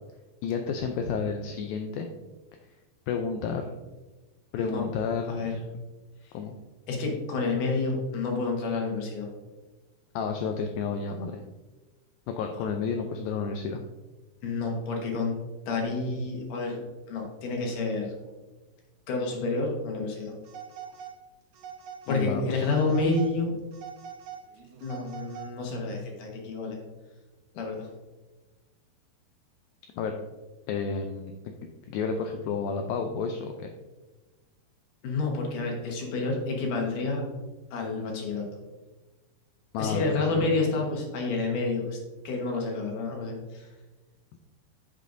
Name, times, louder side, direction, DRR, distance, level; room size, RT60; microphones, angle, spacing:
voice 1, 0.4-2.1 3.1-3.7 4.5-5.5 6.3-6.6 10.2-11.4 12.3-13.8 22.1-22.7 30.0-30.2 30.7-31.3 31.9-33.7 39.7-40.5, left 5 dB, 85° left, 4 dB, 2.1 m, -31 dB
voice 2, 4.6-4.9 5.3-5.6 6.9-9.3 14.4-15.3 15.7-18.2 19.1-20.3 22.1-23.5 24.8-26.8 27.5-27.9 35.0-37.2 37.7-38.5 39.8-42.0 42.2-43.7, left 3 dB, 65° left, 0 dB, 2.4 m, -29 dB
Telephone, 20.4-21.2 21.5-22.3 22.6-23.3 23.7-25.7, right 8 dB, 90° right, 1.6 m, -43 dB
8.2 x 7.6 x 2.6 m, 1.2 s
omnidirectional pair, 4.7 m